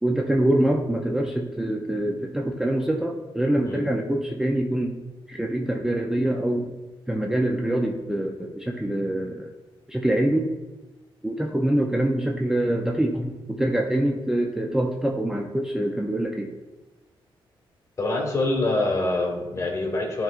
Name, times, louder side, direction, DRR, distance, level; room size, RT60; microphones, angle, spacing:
voice 1, 0.0-4.9 5.3-6.8 7.1-9.5 9.9-10.5 11.2-16.5, right 1 dB, 5° right, 0 dB, 0.5 m, -25 dB
voice 2, 18.0-20.2, left 2 dB, 35° left, 1 dB, 1.4 m, -25 dB
10.5 x 3.7 x 2.4 m, 1.1 s
cardioid pair, 110°, 9 cm